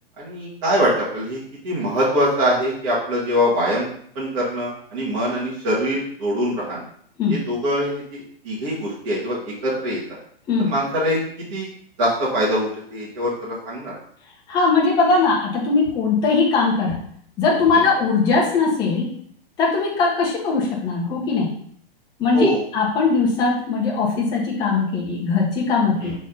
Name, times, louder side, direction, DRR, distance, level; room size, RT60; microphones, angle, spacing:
voice 1, 0.2-1.4 1.6-3.9 4.2-6.8 7.3-10.0 10.6-11.2 11.5-11.7 12.0-13.9 17.7-17.9 22.3-22.6 26.0-26.1, equal, 35° right, -9 dB, 2.0 m, -23 dB
voice 2, 14.5-17.0 17.4-19.0 19.6-21.5 22.2-26.1, left 4 dB, 15° left, -3 dB, 1.1 m, -20 dB
6.2 x 4.1 x 3.9 m, 0.62 s
hypercardioid pair, 170°, 29 cm